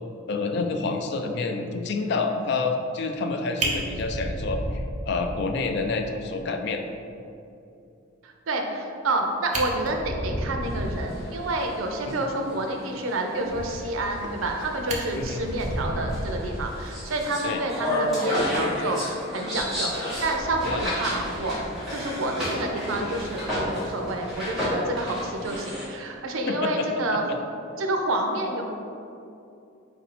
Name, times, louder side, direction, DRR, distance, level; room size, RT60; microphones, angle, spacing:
voice 1, 0.3-6.8 12.1-12.3 15.1-15.5 17.4-17.6 20.6-20.9 26.5-27.2, left 3 dB, 55° left, 5 dB, 0.3 m, -28 dB
Fire, 3.1-3.3 3.6-5.5 5.9-6.0 6.3-6.4 6.8-6.9 9.0-9.1 9.4-11.2 14.0-14.5 14.9-17.1 18.4-18.6, right 1 dB, 35° right, 0.6 m, -31 dB
voice 2, 8.2-21.6 21.9-27.2 27.8-28.7, right 2 dB, 85° right, 3 dB, 0.5 m, -29 dB
sound 1, 10.6-25.8, equal, ahead, 1.3 m, -32 dB
4.4 x 2.7 x 4.1 m, 2.6 s
head